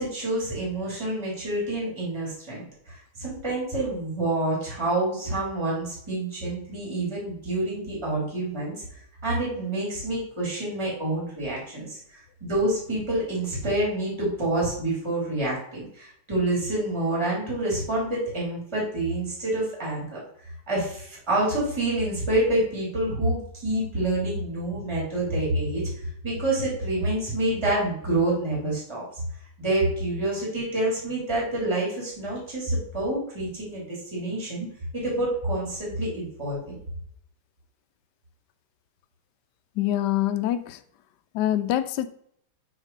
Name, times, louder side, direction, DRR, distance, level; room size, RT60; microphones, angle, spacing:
voice 1, 0.0-20.2 20.7-25.8 26.2-29.2 29.6-34.7 34.9-36.6, right 1 dB, 10° right, -5 dB, 2.6 m, -27 dB
voice 2, 39.7-40.8 41.3-42.1, left 12 dB, 90° left, 11 dB, 0.9 m, -25 dB
6.3 x 4.0 x 5.1 m, 0.66 s
omnidirectional pair, 2.4 m